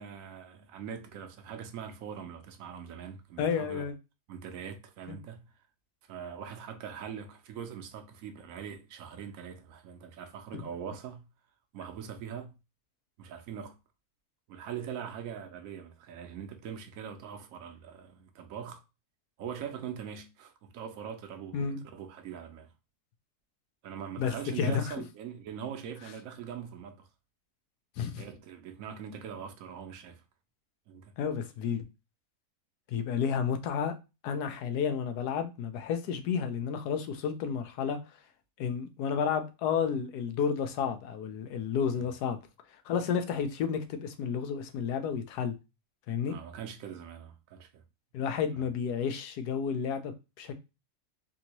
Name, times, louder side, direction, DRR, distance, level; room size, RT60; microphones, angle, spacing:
voice 1, 0.0-3.9 4.3-5.5 6.1-11.2 11.7-12.5 13.2-13.8 14.5-18.8 19.4-21.7 21.9-22.7 23.8-27.1 28.2-30.2 30.9-31.1 41.9-42.1 46.3-47.8 48.6-48.7, right 8 dB, 70° right, 0.9 m, -42 dB
voice 2, 3.4-3.9 5.1-5.2 21.5-21.8 24.2-24.8 28.0-28.2 31.2-31.9 32.9-33.9 34.2-38.0 38.6-42.4 42.8-45.5 46.1-46.4 48.1-50.5, left 7 dB, 85° left, 1.2 m, -31 dB
3.5 x 2.7 x 2.9 m
omnidirectional pair, 1.7 m